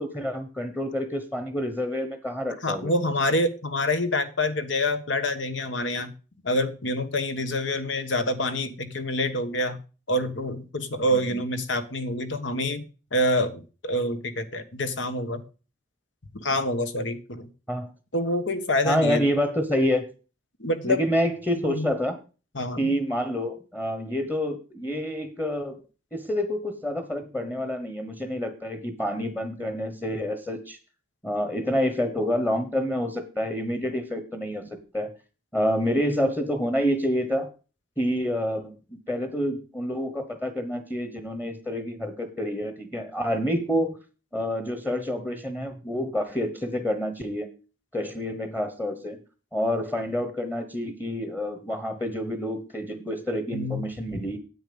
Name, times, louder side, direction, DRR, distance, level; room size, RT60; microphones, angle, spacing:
voice 1, 0.0-2.9 11.1-11.4 17.7-17.9 18.8-20.1 20.8-22.2 22.8-25.8 26.1-30.8 31.2-35.2 35.5-37.5 38.0-44.0 44.3-47.5 47.9-49.2 49.5-54.4, equal, 10° left, 7 dB, 1.1 m, -28 dB
voice 2, 2.6-6.1 6.4-9.8 10.1-12.8 13.1-15.4 16.3-17.5 18.1-19.2 20.6-21.0 21.7-21.9 22.5-22.9 53.5-53.8 54.1-54.2, left 1 dB, 75° left, 9 dB, 1.4 m, -27 dB
10.0 x 8.3 x 5.3 m, 0.34 s
head